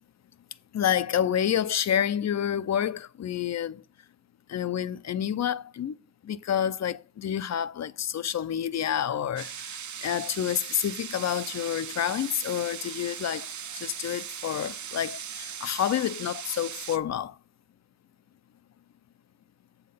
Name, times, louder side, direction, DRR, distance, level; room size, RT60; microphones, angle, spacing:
voice 1, 0.7-3.8 4.5-6.0 6.2-17.4, left 9 dB, 60° left, 0.5 m, -29 dB
sound 1, 9.4-17.0, right 8 dB, 65° right, 0.7 m, -39 dB
7.4 x 5.8 x 5.5 m
wide cardioid pair, 135°, 31 cm